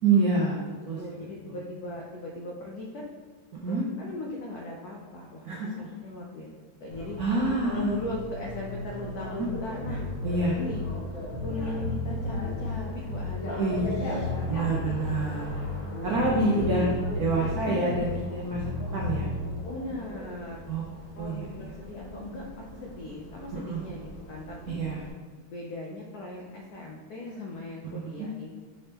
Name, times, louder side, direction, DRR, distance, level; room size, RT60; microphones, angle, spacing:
voice 1, 0.0-1.0 1.5-1.6 3.5-3.8 5.4-5.9 7.2-8.0 9.4-9.5 10.2-10.6 13.6-15.5 16.0-16.9 17.2-19.3 20.7-20.8 21.2-21.7 23.5-23.8 24.7-25.0 28.0-28.3, right 3 dB, 80° right, -5 dB, 0.8 m, -27 dB
voice 2, 1.0-3.1 3.7-6.5 6.8-7.2 7.7-10.1 10.5-10.9 11.4-15.0 16.3-17.0 17.6-18.1 19.7-20.6 21.1-24.8 25.5-28.5, left 2 dB, 90° left, -2 dB, 0.8 m, -39 dB
Bicycle, 6.9-25.1, equal, 65° left, 2.0 m, -40 dB
Bass guitar, 9.8-11.1 11.3-13.5 13.7-15.9 16.1-18.3 18.5-19.4, left 3 dB, 50° right, 0.7 m, -33 dB
5.4 x 3.4 x 2.9 m, 1.5 s
omnidirectional pair, 2.3 m